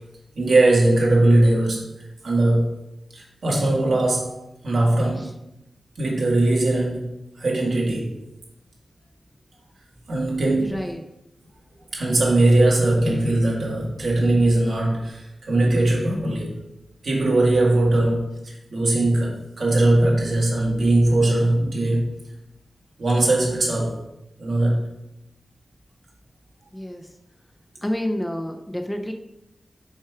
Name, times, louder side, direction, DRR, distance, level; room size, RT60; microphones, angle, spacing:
voice 1, 0.4-1.9 2.2-2.7 3.1-5.3 6.0-8.2 10.1-10.7 11.9-16.6 17.0-22.1 23.0-24.0 24.4-24.9, right 2 dB, 70° right, -3 dB, 2.0 m, -20 dB
voice 2, 10.6-11.0 26.7-27.1 27.8-29.1, left 1 dB, 10° left, 4 dB, 0.6 m, -29 dB
5.6 x 4.6 x 4.9 m, 0.89 s
wide cardioid pair, 90°, 0 cm